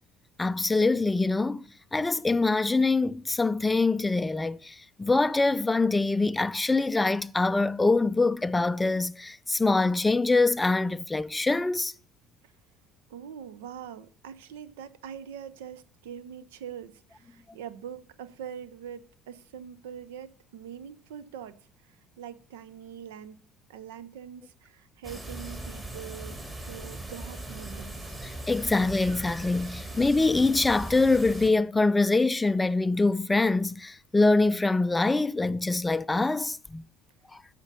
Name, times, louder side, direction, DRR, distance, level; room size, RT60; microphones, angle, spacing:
voice 1, 0.4-1.7 1.9-11.9 28.2-36.8, left 3 dB, 15° left, 0.4 m, -24 dB
voice 2, 13.1-23.4 23.7-28.2, right 8 dB, 65° right, 0.7 m, -43 dB
sound 1, 25.0-31.5, right 1 dB, 20° right, 2.9 m, -39 dB
13.0 x 5.2 x 6.8 m
figure-of-eight pair, 60°, 0 cm